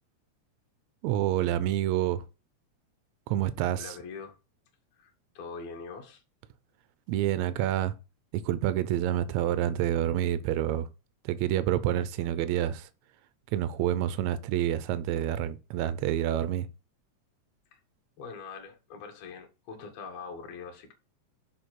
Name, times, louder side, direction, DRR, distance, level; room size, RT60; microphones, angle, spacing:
voice 1, 1.0-2.2 3.3-4.0 7.1-7.9 8.3-10.9 11.3-12.9 13.5-16.7, right 12 dB, 80° right, 1.9 m, -28 dB
voice 2, 3.8-4.4 4.9-6.2 17.7-17.8 18.2-20.9, left 5 dB, 65° left, 2.5 m, -43 dB
6.6 x 4.9 x 4.5 m
omnidirectional pair, 3.3 m